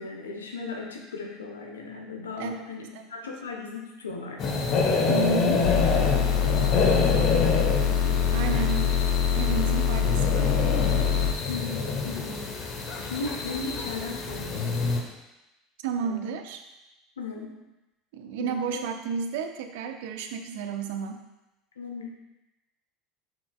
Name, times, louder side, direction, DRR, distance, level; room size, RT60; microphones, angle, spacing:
voice 1, 0.0-4.5 6.4-7.6 7.9-8.5 11.5-12.5 13.0-14.7 16.0-16.2 17.2-17.6 18.4-18.8 21.8-22.2, left 4 dB, 80° left, 2 dB, 1.0 m, -37 dB
sound 1, 4.4-15.0, left 4 dB, 45° left, 1.0 m, -27 dB
voice 2, 5.1-5.7 8.3-9.0 9.3-10.7 15.8-16.6 18.1-21.3, right 6 dB, 65° right, 6 dB, 0.6 m, -32 dB
sound 2, 5.6-11.3, left 8 dB, 65° left, 0.4 m, -24 dB
7.4 x 5.8 x 2.4 m, 0.99 s
figure-of-eight pair, 75°, 0 cm